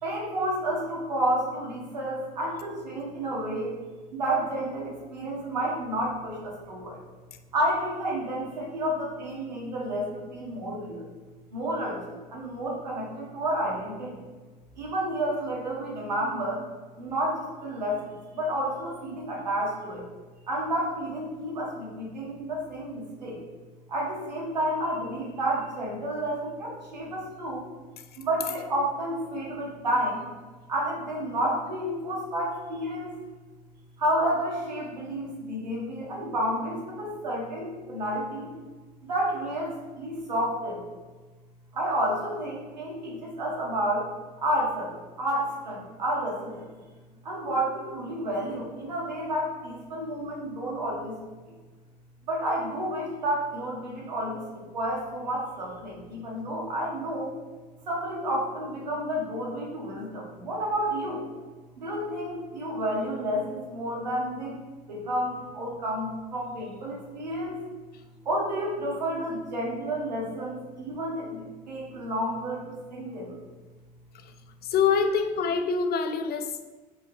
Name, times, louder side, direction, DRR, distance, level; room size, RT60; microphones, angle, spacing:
voice 1, 0.0-3.8 4.1-7.0 7.5-11.0 11.5-14.2 14.8-16.6 17.0-20.0 20.5-23.4 23.9-27.6 28.2-30.3 30.7-33.1 34.0-38.5 39.0-40.8 41.7-44.1 44.4-46.7 47.2-51.1 52.2-57.3 57.9-61.2 61.8-64.6 64.9-67.6 68.2-73.4, right 1 dB, 90° right, -3 dB, 1.6 m, -30 dB
voice 2, 74.6-76.6, left 6 dB, 50° left, 7 dB, 0.8 m, -25 dB
5.4 x 4.5 x 4.1 m, 1.3 s
hypercardioid pair, 60°, 21 cm